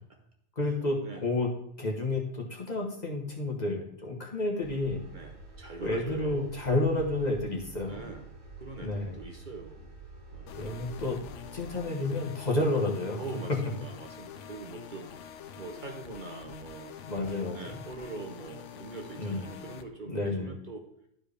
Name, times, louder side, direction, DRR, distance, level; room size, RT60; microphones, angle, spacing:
voice 1, 0.6-1.5 1.8-5.0 5.8-8.0 8.8-9.2 10.6-11.2 11.5-13.2 17.1-17.8 19.2-19.5 20.1-20.5, left 2 dB, 40° left, 0 dB, 1.2 m, -30 dB
sound 1, 4.6-11.8, right 3 dB, 90° right, 1.6 m, -48 dB
voice 2, 5.1-6.6 7.8-8.3 8.6-9.9 10.3-10.6 13.2-15.1 15.6-20.9, right 4 dB, 50° right, 2 dB, 0.8 m, -43 dB
sound 2, 10.5-19.8, left 8 dB, 90° left, 0.9 m, -46 dB
11.0 x 4.5 x 3.3 m, 0.74 s
omnidirectional pair, 1.2 m